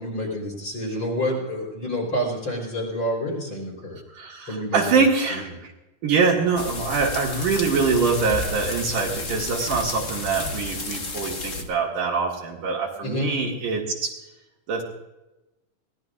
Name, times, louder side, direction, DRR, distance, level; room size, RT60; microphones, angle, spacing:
voice 1, 0.0-4.0 4.5-5.0 5.3-5.4 13.0-13.3, equal, 35° left, 0 dB, 4.4 m, -28 dB
voice 2, 4.1-5.7 6.0-14.2 14.7-14.8, right 4 dB, 70° right, -3 dB, 3.2 m, -24 dB
sound 1, 6.6-11.6, left 3 dB, 90° left, 0.6 m, -32 dB
22.5 x 17.5 x 2.5 m, 1.0 s
omnidirectional pair, 4.0 m